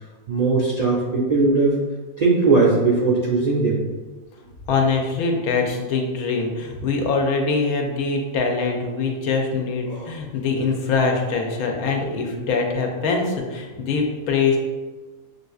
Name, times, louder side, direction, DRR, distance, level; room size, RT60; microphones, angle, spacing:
voice 1, 0.3-1.8 2.2-3.8 9.9-10.1, right 3 dB, 65° right, -4 dB, 0.4 m, -19 dB
voice 2, 4.7-14.6, left 4 dB, 90° left, 2 dB, 1.2 m, -23 dB
6.7 x 2.6 x 2.3 m, 1.3 s
omnidirectional pair, 1.5 m